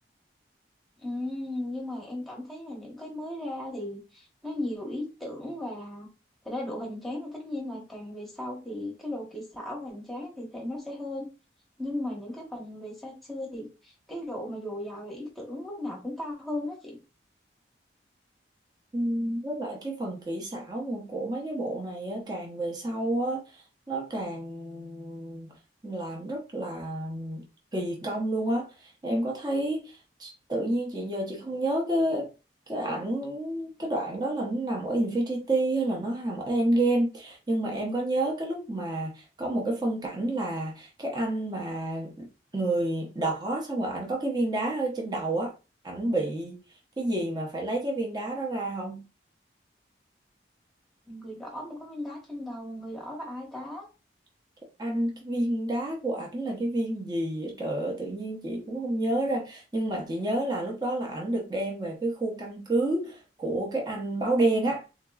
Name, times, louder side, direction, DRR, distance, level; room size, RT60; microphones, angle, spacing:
voice 1, 1.0-6.1 6.4-11.3 11.8-17.0 51.1-53.9, left 1 dB, ahead, 1.1 m, -36 dB
voice 2, 18.9-23.6 23.9-25.5 25.8-27.4 27.7-32.3 32.7-42.3 42.5-45.5 45.8-46.6 47.0-49.1 54.8-64.8, right 1 dB, 20° right, 0.7 m, -29 dB
3.7 x 2.9 x 2.3 m
head